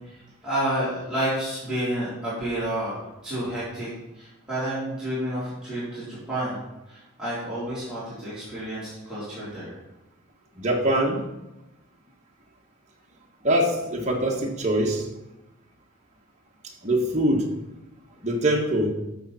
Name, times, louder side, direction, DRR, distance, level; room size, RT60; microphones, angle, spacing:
voice 1, 0.0-6.6 6.9-9.8, right 1 dB, 5° right, -12 dB, 3.9 m, -30 dB
voice 2, 10.6-11.2 13.4-15.1 16.8-17.4 18.2-18.9, right 1 dB, 35° right, 0 dB, 1.6 m, -23 dB
12.5 x 6.7 x 4.3 m, 0.97 s
head